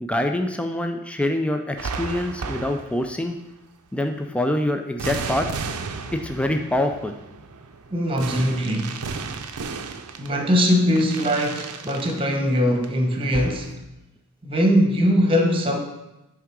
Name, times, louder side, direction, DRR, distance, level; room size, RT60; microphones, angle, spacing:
voice 1, 0.0-3.4 3.9-5.5 6.2-7.1, left 1 dB, 5° left, 5 dB, 0.3 m, -25 dB
sound 1, 1.8-3.2 5.0-12.2 12.7-13.0 13.3-13.7, right 4 dB, 90° right, 0.6 m, -34 dB
voice 2, 7.9-9.0 10.2-13.7 14.4-15.8, equal, 25° right, 3 dB, 1.0 m, -21 dB
9.4 x 3.7 x 4.7 m, 0.95 s
head